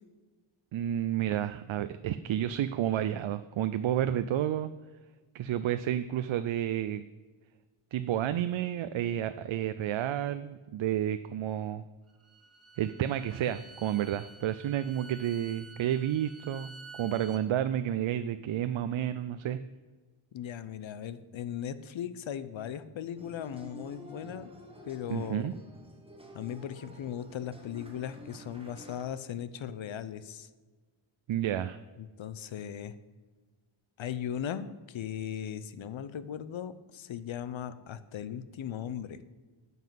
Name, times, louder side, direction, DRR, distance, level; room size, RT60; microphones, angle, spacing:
voice 1, 0.7-4.7 5.3-7.0 7.9-11.8 12.8-19.6 25.1-25.5 31.3-31.8, right 11 dB, 70° right, 11 dB, 0.5 m, -31 dB
Bowed string instrument, 12.1-17.4, right 4 dB, 30° right, 1.2 m, -51 dB
voice 2, 20.3-24.5 24.8-25.5 26.3-30.5 32.0-32.9 34.0-39.2, left 9 dB, 70° left, 14 dB, 0.8 m, -38 dB
sound 1, 23.1-29.0, equal, 10° right, 1.6 m, -50 dB
9.3 x 5.6 x 7.6 m, 1.3 s
wide cardioid pair, 115°, 49 cm